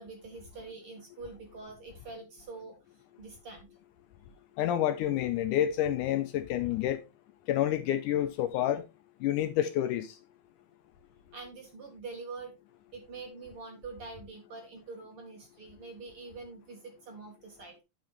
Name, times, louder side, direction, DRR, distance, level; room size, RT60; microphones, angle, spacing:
voice 1, 0.0-2.8 3.2-3.7 11.3-12.5 12.9-17.8, right 4 dB, 50° right, 2.0 m, -45 dB
voice 2, 4.6-7.0 7.5-8.8 9.2-10.2, left 11 dB, 80° left, 2.0 m, -28 dB
10.5 x 5.9 x 3.2 m
omnidirectional pair, 4.0 m